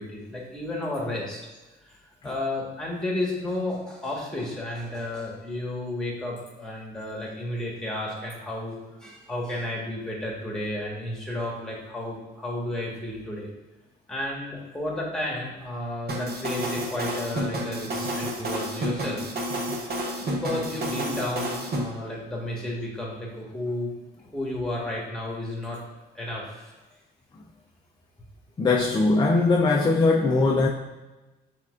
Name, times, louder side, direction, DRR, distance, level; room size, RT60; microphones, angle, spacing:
voice 1, 0.0-1.4 1.9-2.0 2.2-13.5 14.1-19.2 20.2-23.9 24.3-25.8 26.1-26.7, left 1 dB, 5° left, -3 dB, 1.4 m, -32 dB
sound 1, 16.1-21.8, right 1 dB, 50° right, 0.9 m, -30 dB
voice 2, 28.6-30.7, left 3 dB, 20° left, 0 dB, 0.4 m, -20 dB
5.8 x 3.5 x 2.5 m, 1.1 s
cardioid pair, 90°, 20 cm